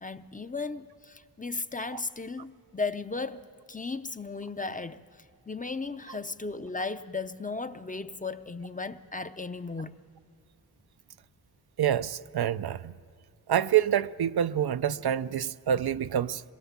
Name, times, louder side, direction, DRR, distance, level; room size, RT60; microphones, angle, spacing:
voice 1, 0.0-9.9, left 3 dB, 20° left, 0.6 m, -36 dB
voice 2, 11.8-12.9 13.5-16.4, right 10 dB, 80° right, 0.6 m, -27 dB
26.5 x 21.5 x 7.3 m
wide cardioid pair, 115°, 37 cm